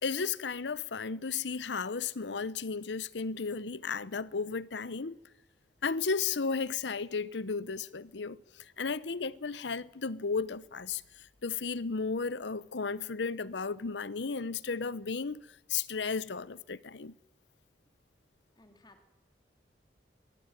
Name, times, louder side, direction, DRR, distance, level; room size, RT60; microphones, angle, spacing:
voice 1, 0.0-5.2 5.8-17.1, left 5 dB, 85° left, 0.8 m, -34 dB
voice 2, 18.6-19.1, left 2 dB, 25° left, 3.1 m, -59 dB
25.5 x 21.5 x 9.1 m
head